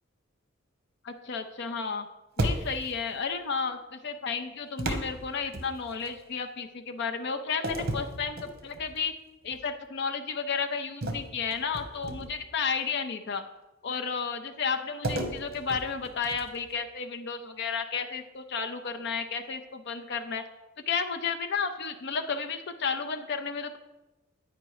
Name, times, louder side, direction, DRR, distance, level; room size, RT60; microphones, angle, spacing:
voice 1, 1.0-2.1 2.4-9.1 9.4-13.4 13.8-20.4 20.9-23.8, left 5 dB, 55° left, 6 dB, 0.6 m, -32 dB
sound 1, 2.4-3.0 4.8-6.1 7.6-9.0 9.4-9.7 11.0-12.5 15.0-16.7, right 1 dB, 50° right, 0.9 m, -34 dB
8.7 x 5.1 x 4.7 m, 1.0 s
head